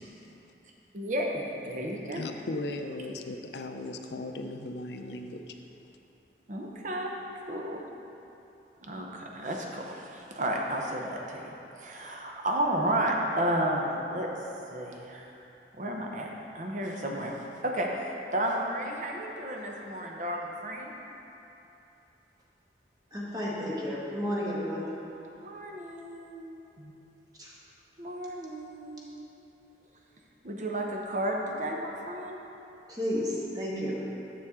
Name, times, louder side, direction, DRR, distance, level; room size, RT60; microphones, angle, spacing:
voice 1, 0.2-0.5 2.1-5.6, left 2 dB, 75° left, 5 dB, 0.5 m, -37 dB
voice 2, 0.9-2.2 6.5-7.1 7.5-7.8 8.8-14.3 14.7-15.3 15.8-16.3 16.5-17.3 17.6-20.9 25.4-26.9 28.0-29.3 30.4-32.4, right 1 dB, 45° right, 0 dB, 0.7 m, -32 dB
voice 3, 23.1-24.9 27.4-27.5 32.9-34.0, equal, 20° right, -6 dB, 1.2 m, -32 dB
7.6 x 7.0 x 3.6 m, 2.9 s
head